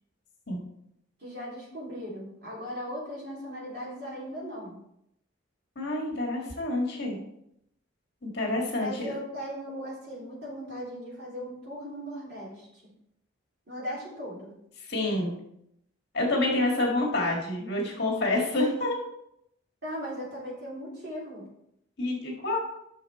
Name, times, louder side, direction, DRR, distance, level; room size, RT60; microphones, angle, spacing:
voice 1, 1.2-4.8 8.8-12.7 13.7-14.5 16.5-16.7 19.8-21.5, equal, 50° right, -5 dB, 3.3 m, -38 dB
voice 2, 5.8-7.2 8.2-9.2 14.8-15.4 16.1-19.0 22.0-22.6, left 2 dB, 55° left, -1 dB, 1.8 m, -28 dB
7.3 x 6.3 x 4.4 m, 0.76 s
head